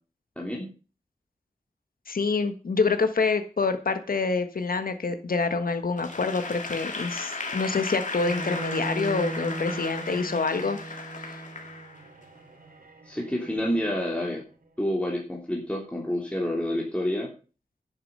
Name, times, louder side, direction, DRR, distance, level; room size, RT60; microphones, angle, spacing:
voice 1, 0.4-0.7 13.1-14.4 14.8-17.3, left 1 dB, 10° left, -2 dB, 3.2 m, -28 dB
voice 2, 2.1-11.4, left 4 dB, 75° left, 8 dB, 1.5 m, -27 dB
Applause / Crowd, 6.0-12.2, left 3 dB, 55° left, 2.3 m, -36 dB
Bowed string instrument, 8.2-14.3, right 2 dB, 80° right, 2.6 m, -38 dB
11.0 x 8.9 x 5.4 m, 0.35 s
wide cardioid pair, 70°, 15 cm